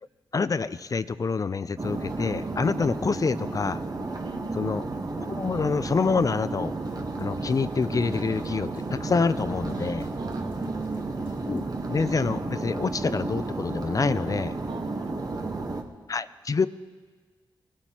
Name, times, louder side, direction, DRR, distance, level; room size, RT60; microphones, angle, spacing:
voice 1, 0.3-3.8 4.6-4.8 5.2-6.7 7.2-10.1 11.5-14.5 16.1-16.7, left 4 dB, 40° left, 15 dB, 0.4 m, -27 dB
sound 1, 1.8-15.8, right 3 dB, 45° right, 1.2 m, -32 dB
voice 2, 4.2-4.8 10.2-11.3 14.7-15.8, right 4 dB, 70° right, 6 dB, 1.1 m, -39 dB
sound 2, 6.9-11.9, left 2 dB, 85° left, 2.8 m, -54 dB
21.0 x 13.0 x 3.0 m, 1.5 s
cardioid pair, 50°, 9 cm